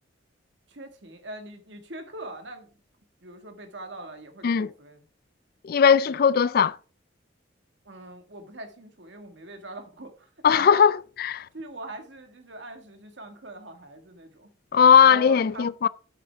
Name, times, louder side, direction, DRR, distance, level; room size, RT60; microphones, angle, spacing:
voice 1, 0.7-2.8 3.2-5.1 6.1-6.2 7.8-10.9 11.5-14.5 14.9-15.7, right 2 dB, 70° right, 1.7 m, -42 dB
voice 2, 5.6-6.8 10.4-10.9 11.2-11.4 14.7-15.9, left 7 dB, 50° left, 0.3 m, -18 dB
12.0 x 6.6 x 3.5 m
head